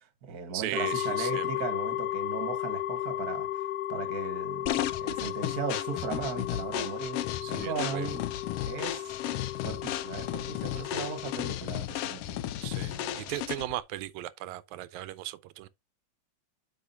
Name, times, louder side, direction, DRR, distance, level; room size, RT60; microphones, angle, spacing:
voice 1, 0.0-8.3 8.7-9.2 9.5-12.4 12.9-13.3, right 6 dB, 45° right, 1.4 m, -38 dB
voice 2, 0.5-1.5 5.7-5.8 7.4-8.1 10.7-11.1 12.6-15.7, right 15 dB, 85° right, 1.9 m, -37 dB
sound 1, 0.7-11.5, left 13 dB, 75° left, 1.7 m, -35 dB
sound 2, 4.7-13.8, left 12 dB, 90° left, 1.3 m, -34 dB
8.5 x 5.7 x 2.7 m
omnidirectional pair, 3.3 m